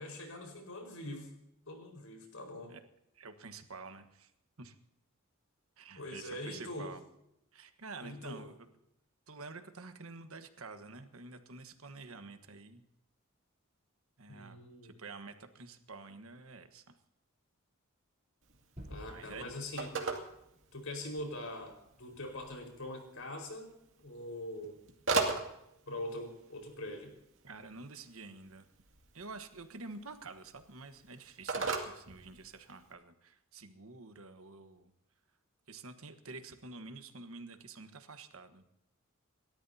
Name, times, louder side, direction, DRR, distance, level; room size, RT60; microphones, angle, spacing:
voice 1, 0.0-1.3 1.7-2.7 6.0-6.9 8.0-8.4 14.3-14.9 18.9-19.9 20.7-23.7 24.0-24.8 25.9-27.1, left 1 dB, 75° left, 3 dB, 4.7 m, -43 dB
voice 2, 3.1-4.3 4.6-4.7 5.8-7.0 7.5-8.5 9.3-12.8 14.2-16.9 19.1-19.5 27.4-28.7 29.1-34.9 35.7-38.7, right 3 dB, 75° right, 8 dB, 1.3 m, -49 dB
Telephone, 18.4-32.9, right 3 dB, 60° right, 2.4 m, -41 dB
Gunshot gunfire / Fireworks / Boom, 18.8-23.6, right 1 dB, 30° right, 3.5 m, -55 dB
29.0 x 13.0 x 2.8 m, 0.80 s
head